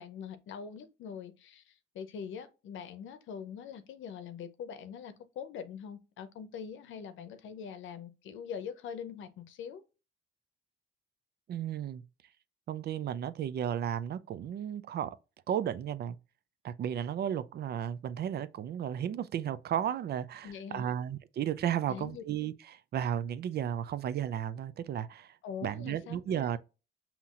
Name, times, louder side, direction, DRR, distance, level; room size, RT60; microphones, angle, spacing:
voice 1, 0.0-9.8 20.4-20.9 21.9-22.2 25.4-26.5, left 7 dB, 80° left, 0.7 m, -43 dB
voice 2, 11.5-12.0 12.7-15.2 15.5-16.2 16.6-25.4 25.6-26.6, right 9 dB, 55° right, 0.4 m, -34 dB
5.6 x 2.9 x 2.4 m
cardioid pair, 90°, 20 cm